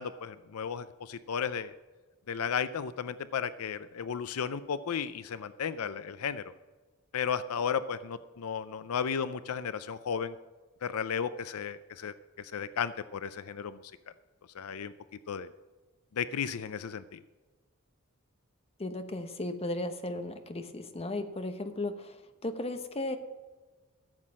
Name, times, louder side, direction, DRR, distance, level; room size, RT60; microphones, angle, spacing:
voice 1, 0.0-1.7 2.3-6.4 7.1-10.3 10.8-13.9 14.5-14.9 15.3-15.5 16.1-17.2, left 7 dB, 75° left, 13 dB, 0.5 m, -34 dB
voice 2, 18.8-23.2, left 2 dB, 30° left, 7 dB, 1.0 m, -35 dB
14.0 x 7.5 x 6.3 m, 1.3 s
head